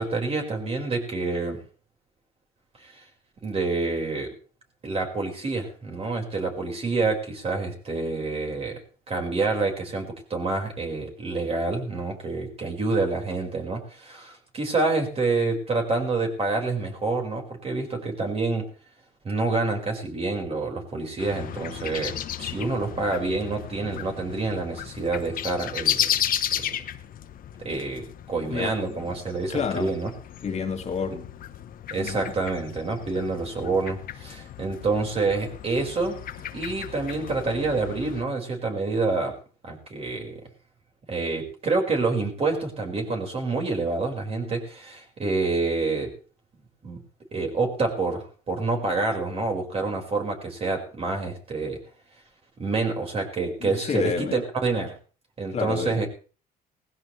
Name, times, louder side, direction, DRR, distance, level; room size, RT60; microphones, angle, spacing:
voice 1, 0.0-1.6 2.8-3.0 3.4-4.3 4.8-8.8 9.1-18.7 19.2-26.1 26.5-26.6 27.7-30.1 31.9-36.2 36.5-39.4 39.6-40.4 41.1-46.2 46.8-47.0 47.3-51.8 52.6-55.0 55.4-56.1, right 3 dB, 35° right, 5.3 m, -27 dB
sound 1, 21.2-38.2, left 10 dB, 55° left, 1.2 m, -34 dB
voice 2, 28.5-29.1 29.5-29.9 30.4-31.3 31.9-32.2 53.6-54.4 55.5-56.0, left 6 dB, 40° left, 2.2 m, -29 dB
19.0 x 15.5 x 3.3 m
cardioid pair, 110°, 17 cm